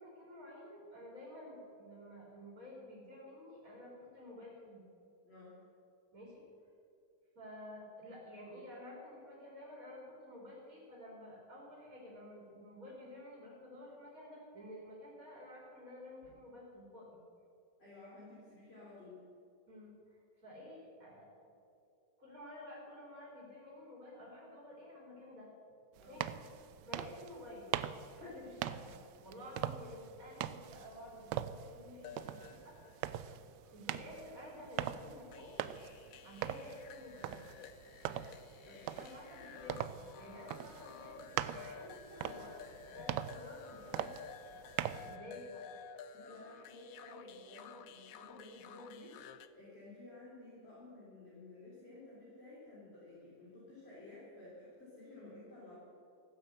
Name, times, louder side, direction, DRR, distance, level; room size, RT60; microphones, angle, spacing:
voice 1, 0.0-4.8 6.1-6.4 7.4-17.2 19.7-21.5 22.2-25.5 26.1-26.4 26.8-27.7 28.2-32.7 33.7-35.5 36.2-37.4 39.0-44.1 44.6-44.7 45.0-45.7, left 1 dB, 50° right, -4 dB, 3.9 m, -51 dB
voice 2, 5.2-5.6 17.8-19.2 26.0-26.2 28.1-28.4 38.6-38.8 44.8-45.0 46.1-55.7, left 2 dB, 35° left, -7 dB, 3.4 m, -53 dB
sound 1, 26.0-45.2, right 11 dB, 80° right, 1.2 m, -42 dB
sound 2, 30.5-30.6 32.0-33.4 35.3-49.5, left 8 dB, 65° left, 1.0 m, -53 dB
15.0 x 9.6 x 7.9 m, 2.5 s
omnidirectional pair, 1.9 m